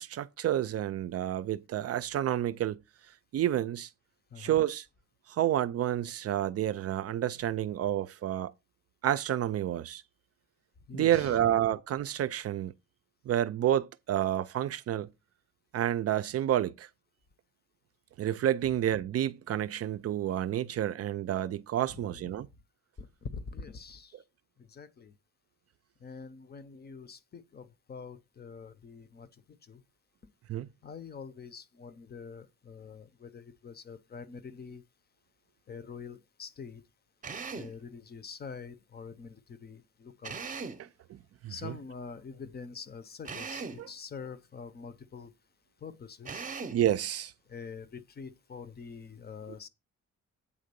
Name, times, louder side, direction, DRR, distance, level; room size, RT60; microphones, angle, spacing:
voice 1, 0.0-2.8 3.3-3.9 4.4-4.8 5.4-8.5 9.0-10.0 10.9-12.7 13.3-15.1 15.7-16.9 18.2-22.5 30.5-30.7 41.1-41.7 43.8-43.9 46.7-47.3, right 11 dB, 50° right, 0.5 m, -29 dB
voice 2, 10.9-11.5 21.9-22.3 23.3-24.1 24.7-25.1 26.0-29.3 29.7-29.8 30.8-34.8 35.7-36.8 37.6-39.4 39.6-40.4 41.5-45.3 45.8-46.4 47.5-49.7, left 5 dB, 30° left, 0.6 m, -45 dB
Drill, 37.2-37.8 40.2-40.9 43.2-43.9 46.2-46.9, right 5 dB, 25° right, 0.8 m, -39 dB
8.6 x 3.7 x 6.7 m
cardioid pair, 175°, 31 cm